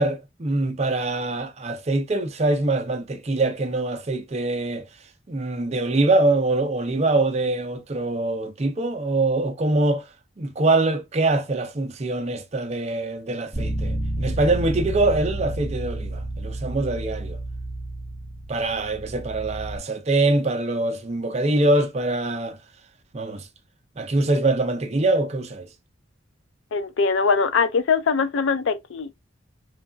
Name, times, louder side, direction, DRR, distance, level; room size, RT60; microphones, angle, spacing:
voice 1, 0.0-4.9 5.3-10.0 10.4-17.4 18.5-22.6 23.1-23.5 24.0-25.7, right 2 dB, 35° right, 0.5 m, -24 dB
Bass guitar, 13.5-19.8, right 1 dB, 15° left, 1.0 m, -30 dB
voice 2, 26.7-29.1, left 5 dB, 70° left, 0.4 m, -22 dB
3.2 x 2.3 x 2.4 m
head